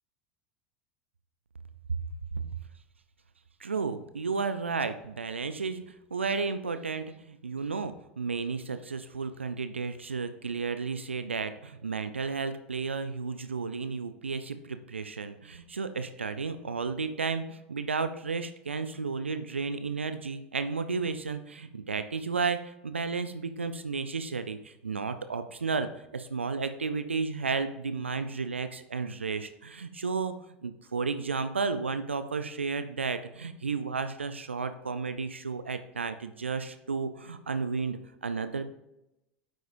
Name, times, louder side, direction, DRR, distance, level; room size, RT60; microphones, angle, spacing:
voice 1, 3.6-30.3 30.6-38.6, right 4 dB, 85° right, 11 dB, 0.5 m, -33 dB
9.7 x 7.8 x 2.6 m, 0.88 s
figure-of-eight pair, 80°, 6 cm